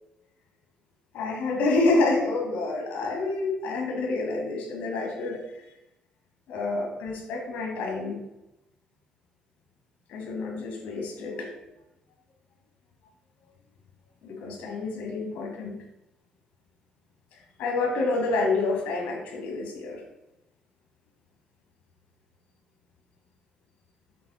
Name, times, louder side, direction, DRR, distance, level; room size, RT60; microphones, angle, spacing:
voice 1, 1.1-5.6 6.5-8.2 10.1-11.6 14.2-15.8 17.6-20.0, left 3 dB, 85° left, 1 dB, 2.0 m, -28 dB
7.7 x 4.4 x 4.3 m, 0.93 s
cardioid pair, 175°, 3 cm